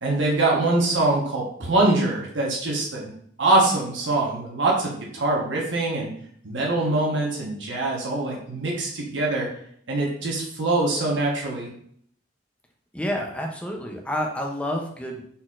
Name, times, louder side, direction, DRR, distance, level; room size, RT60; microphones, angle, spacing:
voice 1, 0.0-3.0 3.4-6.1 6.4-9.5 9.9-11.7, right 2 dB, 80° right, -2 dB, 1.1 m, -23 dB
voice 2, 12.9-15.2, equal, 5° left, 1 dB, 0.5 m, -29 dB
4.2 x 4.1 x 2.4 m, 0.64 s
head